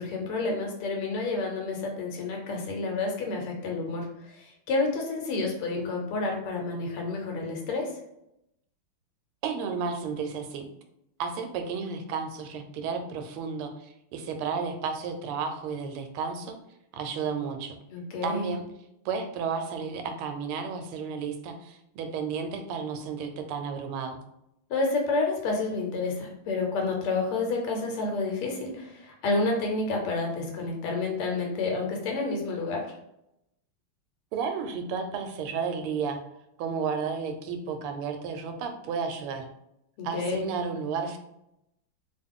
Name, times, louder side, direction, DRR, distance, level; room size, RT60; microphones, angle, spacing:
voice 1, 0.0-7.9 17.9-18.5 24.7-32.9 40.0-40.5, left 3 dB, 85° left, 1 dB, 1.7 m, -29 dB
voice 2, 9.4-10.7 11.2-16.5 16.9-17.8 18.2-18.6 19.0-24.2 34.3-36.2 36.6-39.5 40.0-41.2, right 5 dB, 85° right, 6 dB, 1.5 m, -32 dB
3.5 x 2.3 x 3.5 m, 0.82 s
omnidirectional pair, 2.3 m